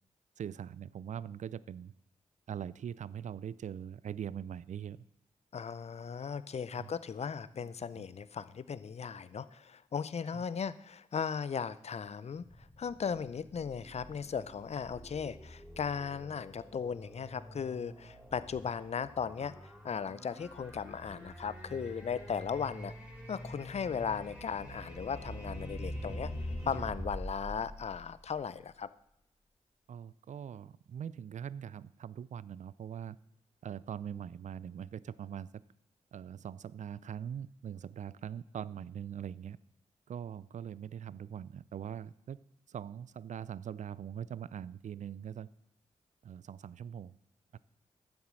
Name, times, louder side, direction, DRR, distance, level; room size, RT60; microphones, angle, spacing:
voice 1, 0.4-1.9 2.5-5.0 6.8-6.9 7.6-7.7 7.9-8.0 10.3-10.4 29.9-33.2 33.6-35.6 36.1-39.6 40.1-42.4 42.7-45.5 46.2-47.2 47.5-47.6, right 9 dB, 65° right, 20 dB, 0.4 m, -42 dB
voice 2, 5.5-12.5 12.8-22.9 23.3-26.3 26.6-28.9, left 6 dB, 50° left, 16 dB, 0.6 m, -37 dB
sound 1, 12.4-28.6, equal, 5° right, 3.4 m, -45 dB
10.5 x 7.3 x 6.2 m, 0.80 s
cardioid pair, 45°, 14 cm